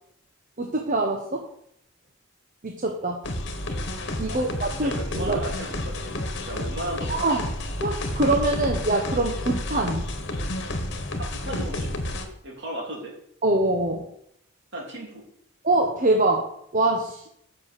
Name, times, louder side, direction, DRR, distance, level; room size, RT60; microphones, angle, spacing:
voice 1, 0.6-1.4 2.6-3.2 4.2-5.4 7.1-7.4 7.8-10.0 13.4-14.1 15.6-16.4 16.7-17.2, right 2 dB, 40° right, 2 dB, 1.0 m, -24 dB
sound 1, 3.2-12.3, left 1 dB, 55° left, 1.4 m, -30 dB
voice 2, 4.3-7.3 11.2-13.1 14.7-15.2, right 1 dB, 55° right, -2 dB, 3.4 m, -36 dB
7.5 x 6.3 x 7.6 m, 0.73 s
head